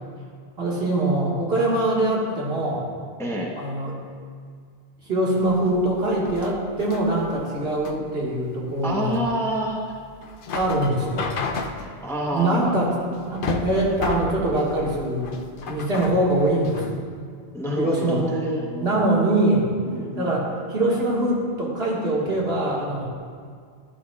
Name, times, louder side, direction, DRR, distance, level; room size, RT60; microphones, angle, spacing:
voice 1, 0.6-2.9 3.6-4.0 5.0-9.1 10.5-11.4 12.3-15.3 15.7-17.0 17.8-19.7 20.1-23.1, right 1 dB, 65° right, -4 dB, 1.9 m, -23 dB
voice 2, 3.2-3.5 8.8-10.0 11.8-12.8 17.5-20.6, right 1 dB, 5° left, -2 dB, 0.8 m, -29 dB
sound 1, 5.4-17.0, left 4 dB, 60° left, 0.7 m, -34 dB
11.0 x 11.0 x 2.3 m, 2.1 s
omnidirectional pair, 1.1 m